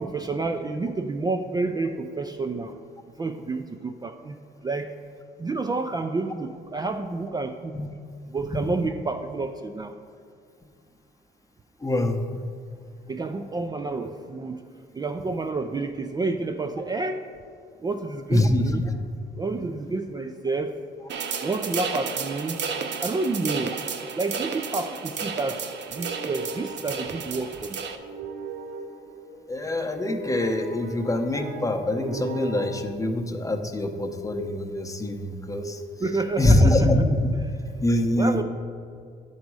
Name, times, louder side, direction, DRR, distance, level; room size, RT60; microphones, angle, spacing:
voice 1, 0.0-2.7 3.2-4.4 4.6-4.9 5.4-7.8 8.3-9.9 13.1-14.6 15.0-17.2 17.8-18.8 19.4-20.7 21.4-22.6 23.0-23.7 24.2-25.6 25.9-27.8 36.0-36.9 38.2-38.4, right 3 dB, 20° right, 5 dB, 0.3 m, -29 dB
voice 2, 11.8-12.2 18.3-18.6 29.5-35.8 36.4-37.3 37.8-38.4, left 1 dB, 15° left, 5 dB, 0.7 m, -24 dB
sound 1, 21.1-28.0, right 5 dB, 65° right, 0.7 m, -32 dB
sound 2, 24.8-32.7, right 4 dB, 80° right, 1.1 m, -40 dB
10.5 x 4.0 x 4.7 m, 2.3 s
cardioid pair, 90°, 20 cm